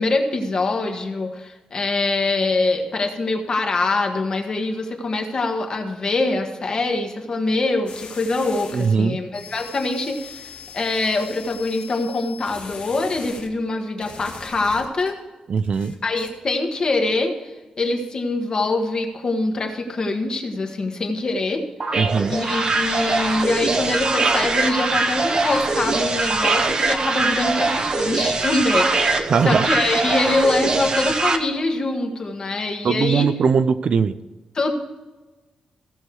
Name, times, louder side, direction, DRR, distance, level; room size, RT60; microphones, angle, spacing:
voice 1, 0.0-15.2 16.0-21.7 22.3-33.3 34.5-34.7, left 2 dB, 35° left, 4 dB, 1.5 m, -24 dB
sound 1, 7.9-8.9 9.3-13.5 14.0-15.1 15.6-16.3, left 6 dB, 75° left, 2.1 m, -40 dB
voice 2, 8.7-9.2 15.5-15.9 22.0-22.4 29.3-29.7 32.8-34.1, right 6 dB, 55° right, 12 dB, 0.5 m, -20 dB
sound 2, 21.8-31.4, right 3 dB, 35° right, 0.9 m, -22 dB
16.5 x 6.5 x 4.7 m, 1.2 s
wide cardioid pair, 160°, 2 cm